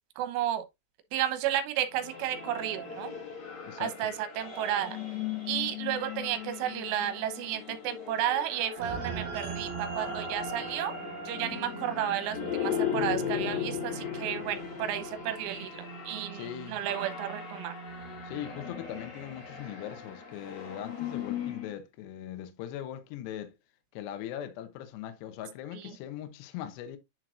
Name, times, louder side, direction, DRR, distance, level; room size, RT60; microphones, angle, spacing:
voice 1, 0.2-0.6 1.1-3.1 3.8-5.0 5.5-10.9 11.3-17.7 25.7-26.0, right 11 dB, 80° right, 3.3 m, -32 dB
sound 1, 1.9-21.7, left 8 dB, 60° left, 2.0 m, -38 dB
voice 2, 3.6-4.1 16.3-16.8 18.2-23.5 23.9-27.0, left 11 dB, 80° left, 2.5 m, -40 dB
sound 2, 8.8-19.4, right 6 dB, 50° right, 4.0 m, -42 dB
10.5 x 4.6 x 2.5 m
omnidirectional pair, 5.9 m